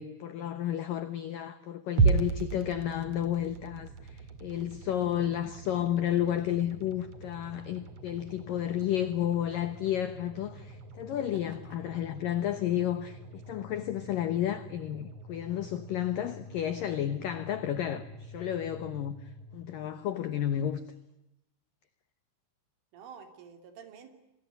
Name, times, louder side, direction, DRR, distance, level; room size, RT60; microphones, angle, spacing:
voice 1, 0.0-20.8, left 11 dB, 80° left, 2.0 m, -32 dB
sound 1, 2.0-20.2, right 4 dB, 45° right, 2.4 m, -37 dB
voice 2, 11.3-11.9 22.9-24.1, right 7 dB, 75° right, 5.6 m, -50 dB
27.0 x 21.5 x 9.4 m
omnidirectional pair, 5.7 m